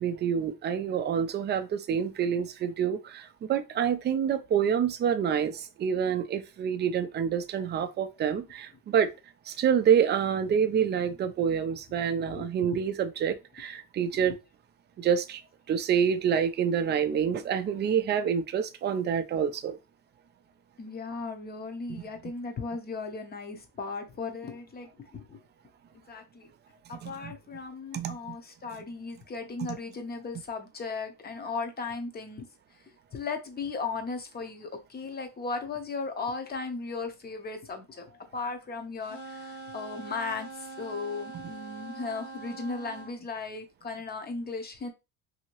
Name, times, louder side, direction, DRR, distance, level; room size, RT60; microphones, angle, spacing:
voice 1, 0.0-9.1 9.5-14.4 15.0-15.4 15.7-19.8 21.9-22.0 27.0-27.3 27.9-28.4, right 8 dB, 30° right, 0.3 m, -27 dB
voice 2, 12.2-12.8 14.1-14.4 20.8-25.4 26.1-26.5 26.9-32.5 33.1-44.9, left 4 dB, 25° left, 0.7 m, -36 dB
sound 1, 39.0-43.1, right 3 dB, 50° left, 1.4 m, -43 dB
2.8 x 2.8 x 2.9 m
cardioid pair, 120°, 40 cm